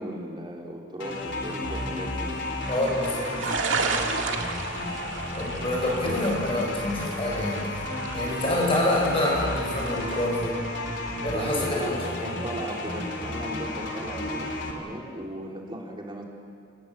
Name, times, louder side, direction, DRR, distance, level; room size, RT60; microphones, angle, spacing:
voice 1, 0.0-2.3 11.3-16.2, right 1 dB, 25° right, -1 dB, 3.6 m, -37 dB
sound 1, 1.0-14.7, left 1 dB, 65° left, 3.5 m, -33 dB
sound 2, 2.6-10.3, right 4 dB, 85° right, 2.0 m, -34 dB
voice 2, 2.7-3.4 5.4-7.7 8.1-10.6 11.2-12.4, left 1 dB, 30° left, -2 dB, 7.5 m, -27 dB
29.5 x 18.5 x 7.7 m, 2.3 s
head